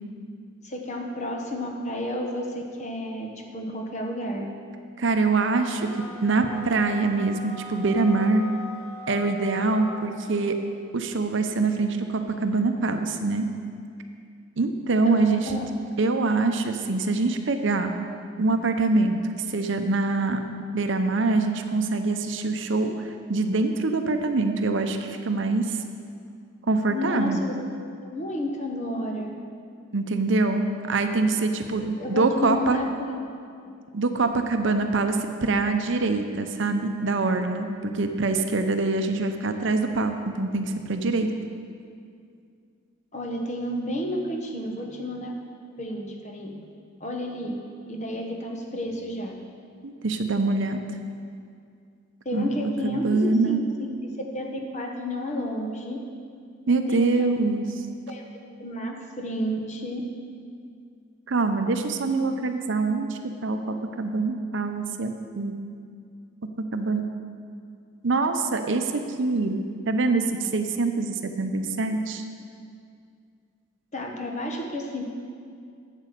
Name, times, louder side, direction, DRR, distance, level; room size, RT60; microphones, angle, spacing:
voice 1, 0.6-4.5 15.0-15.7 26.9-29.3 31.8-32.9 43.1-45.3 45.8-46.7 47.0-47.6 47.9-49.3 52.2-56.0 56.9-57.4 58.1-58.3 58.6-60.0 73.9-75.0, left 1 dB, 35° left, 2 dB, 1.0 m, -31 dB
voice 2, 5.0-5.9 6.2-8.4 9.1-10.6 10.9-13.5 14.6-15.6 16.0-17.9 18.4-20.4 20.7-25.8 26.7-27.4 29.9-32.8 33.9-41.3 49.8-50.8 52.3-53.6 56.7-57.6 61.3-65.5 66.7-67.0 68.0-69.6 69.9-72.2, right 3 dB, 60° right, 6 dB, 0.6 m, -24 dB
sound 1, 5.6-10.3, equal, 75° left, 2.5 m, -40 dB
8.3 x 8.0 x 6.7 m, 2.3 s
head